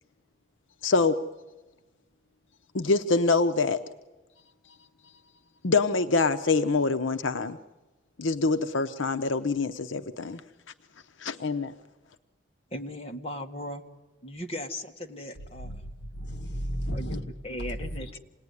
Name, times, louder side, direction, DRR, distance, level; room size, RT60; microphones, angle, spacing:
voice 1, 0.8-1.2 2.7-3.8 5.6-7.6 8.2-10.4 11.2-11.7, left 3 dB, 80° left, 0.8 m, -25 dB
voice 2, 12.7-13.8 14.2-15.8 16.9-18.2, left 1 dB, 30° left, 1.8 m, -37 dB
voice 3, 15.6-17.3 17.7-18.2, equal, 60° left, 1.6 m, -34 dB
27.5 x 19.0 x 9.7 m
head